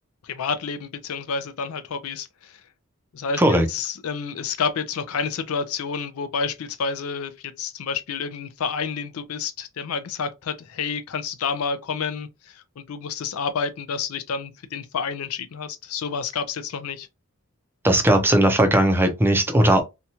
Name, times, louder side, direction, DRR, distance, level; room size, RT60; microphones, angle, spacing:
voice 1, 0.2-2.6 3.1-3.4 3.7-17.1, left 5 dB, 75° left, 0.4 m, -29 dB
voice 2, 17.8-19.8, right 1 dB, 10° right, 0.5 m, -18 dB
2.8 x 2.3 x 2.7 m
head